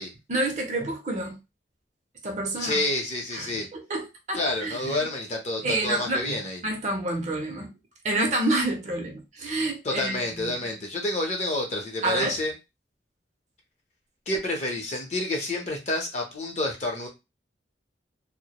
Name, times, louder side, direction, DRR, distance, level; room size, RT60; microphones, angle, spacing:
voice 1, 0.3-1.4 2.2-2.8 3.3-5.0 5.6-6.4 6.6-7.8 8.0-10.5 12.0-12.4, right 2 dB, 40° right, 0.6 m, -28 dB
voice 2, 2.6-3.7 4.3-6.6 9.8-12.5 14.3-17.1, left 1 dB, 40° left, 0.7 m, -29 dB
2.2 x 2.0 x 2.8 m
head